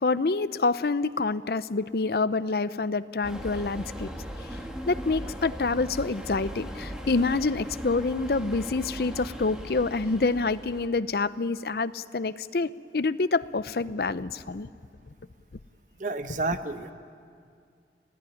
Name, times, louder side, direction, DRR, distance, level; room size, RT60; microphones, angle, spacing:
voice 1, 0.0-4.1 4.9-14.7, left 3 dB, 60° left, 15 dB, 0.6 m, -27 dB
sound 1, 3.2-10.9, equal, 5° right, 1.9 m, -38 dB
voice 2, 16.0-16.9, right 3 dB, 45° right, 9 dB, 1.0 m, -30 dB
27.0 x 16.5 x 10.0 m, 2.3 s
head